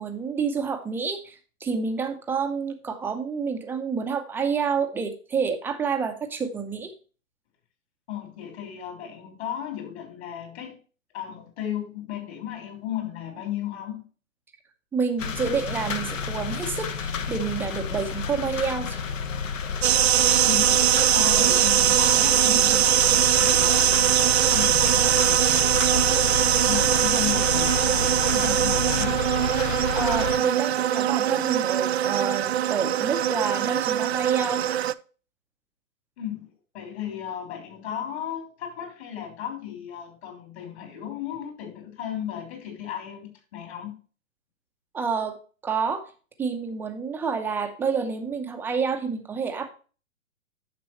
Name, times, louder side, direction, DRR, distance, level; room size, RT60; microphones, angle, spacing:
voice 1, 0.0-6.9 14.9-19.0 29.9-34.6 44.9-45.4 45.6-46.1 46.4-49.7, right 5 dB, 5° right, 0.7 m, -28 dB
voice 2, 8.1-10.8 11.1-14.0 20.4-29.2 36.2-36.5 36.7-44.0, left 10 dB, 50° left, 3.6 m, -35 dB
sound 1, 15.2-30.4, left 6 dB, 65° left, 1.2 m, -30 dB
sound 2, 19.8-34.9, right 12 dB, 50° right, 0.4 m, -21 dB
9.9 x 6.7 x 3.0 m
hypercardioid pair, 130°, 41 cm